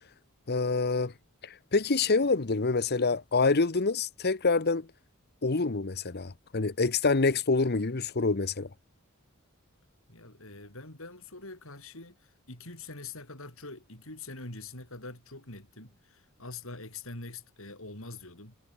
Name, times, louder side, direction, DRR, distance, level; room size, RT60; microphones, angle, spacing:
voice 1, 0.5-1.1 1.4-4.9 5.4-8.7, left 3 dB, 50° left, 1.0 m, -26 dB
voice 2, 10.1-18.6, left 3 dB, 70° left, 7.7 m, -44 dB
head